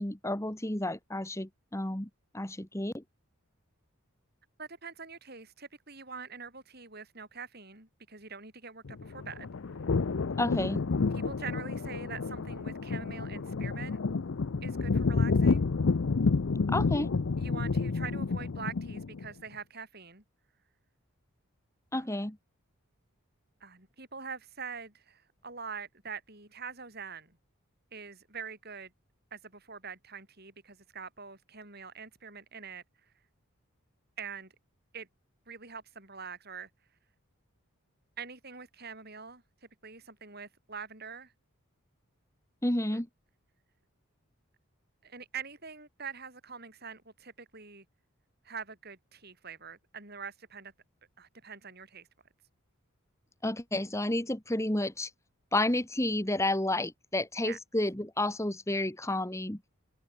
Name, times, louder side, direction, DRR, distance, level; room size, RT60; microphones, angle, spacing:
voice 1, 0.0-2.1 2.3-3.0 10.4-10.8 16.7-17.1 21.9-22.4 42.6-43.1 53.4-55.1 55.5-59.6, left 1 dB, 15° left, 1.5 m, -31 dB
voice 2, 4.6-9.5 10.7-10.8 11.1-14.0 14.6-15.6 17.4-20.2 21.9-22.1 23.6-27.4 27.9-28.9 29.3-32.8 34.2-34.5 34.9-35.1 35.5-36.7 38.2-39.4 39.8-41.3 42.9-43.0 45.0-47.9 48.4-50.7 51.2-52.1 57.4-57.6, right 5 dB, 45° right, 7.5 m, -44 dB
sound 1, 8.8-19.3, left 4 dB, 65° left, 0.6 m, -29 dB
head